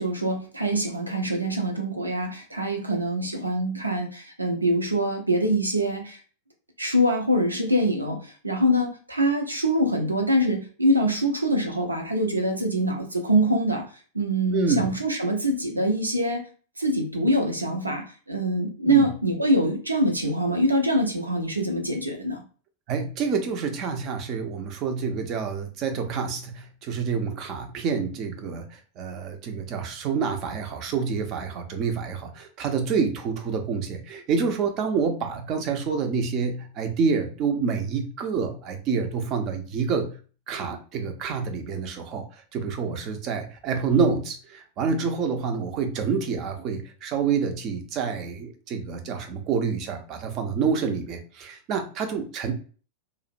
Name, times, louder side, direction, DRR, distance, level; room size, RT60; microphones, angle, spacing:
voice 1, 0.0-6.2 6.8-13.8 14.1-16.4 16.8-22.4, equal, 80° right, 3 dB, 0.6 m, -24 dB
voice 2, 14.5-14.9 18.8-19.1 22.9-40.2 40.5-52.5, right 5 dB, 35° right, 5 dB, 0.5 m, -27 dB
2.4 x 2.0 x 2.5 m, 0.39 s
figure-of-eight pair, 90°, 0 cm